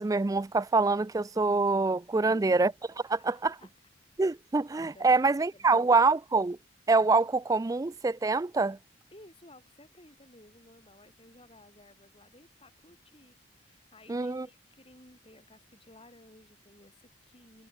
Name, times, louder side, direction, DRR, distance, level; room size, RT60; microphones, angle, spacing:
voice 1, 0.0-2.7 3.1-3.5 4.2-6.6 6.9-8.8 14.1-14.5, right 3 dB, 15° right, 0.3 m, -25 dB
voice 2, 2.1-2.7 3.0-3.7 4.8-6.1 9.1-13.4 13.6-17.7, left 1 dB, 30° left, 7.6 m, -56 dB
head